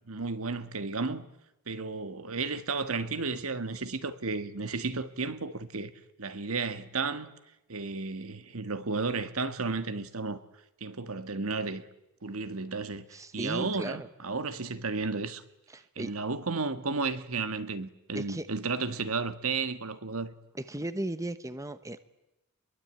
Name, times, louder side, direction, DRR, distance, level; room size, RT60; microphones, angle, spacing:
voice 1, 0.1-1.2 1.7-5.9 6.2-7.3 7.7-10.4 10.8-11.8 12.2-13.1 13.3-15.4 16.0-20.3, right 4 dB, 70° right, 1.6 m, -33 dB
voice 2, 13.1-14.1 15.7-16.1 18.1-18.5 20.5-22.0, right 1 dB, 15° right, 0.9 m, -36 dB
27.0 x 22.0 x 9.0 m
head